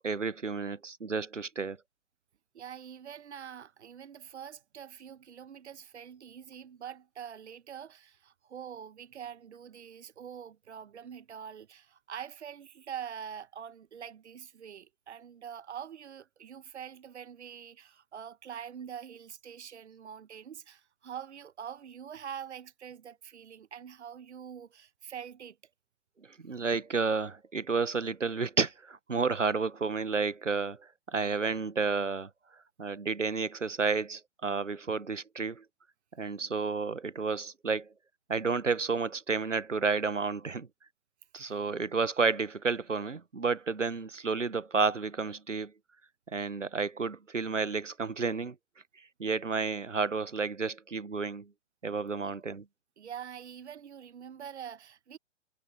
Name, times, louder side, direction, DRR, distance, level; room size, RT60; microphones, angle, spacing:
voice 1, 0.0-1.8 26.4-32.3 32.8-35.6 36.2-37.9 38.3-40.7 41.3-45.7 46.3-48.5 49.2-51.5 51.8-52.6, right 4 dB, 90° right, 1.1 m, -31 dB
voice 2, 2.5-25.6 41.4-41.6 52.2-52.3 53.0-55.2, right 8 dB, 65° right, 1.2 m, -45 dB
figure-of-eight pair, 115°, 36 cm